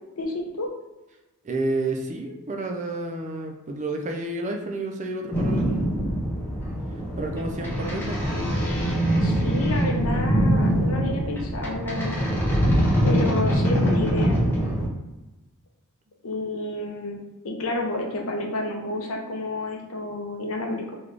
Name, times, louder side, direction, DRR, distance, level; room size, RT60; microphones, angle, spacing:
voice 1, 0.2-0.7 9.2-12.2 13.0-14.4 16.2-17.2 17.4-21.0, left 2 dB, 70° left, 1 dB, 0.7 m, -30 dB
voice 2, 1.4-6.0 7.2-8.2, right 2 dB, 35° right, 3 dB, 0.5 m, -30 dB
sound 1, 5.3-14.9, equal, 10° left, 1.0 m, -23 dB
3.9 x 2.3 x 3.3 m, 1.1 s
head